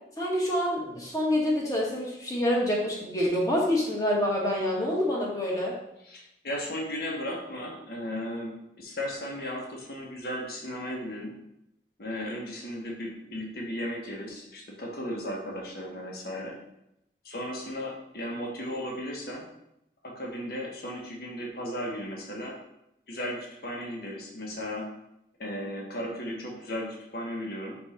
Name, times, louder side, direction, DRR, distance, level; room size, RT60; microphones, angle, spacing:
voice 1, 0.2-5.7, left 1 dB, 20° left, -3 dB, 1.5 m, -27 dB
voice 2, 6.0-11.3 12.0-16.6 17.2-19.5 20.0-22.6 23.1-24.9 25.4-27.8, equal, 55° left, -1 dB, 1.5 m, -35 dB
5.1 x 4.3 x 5.7 m, 0.81 s
head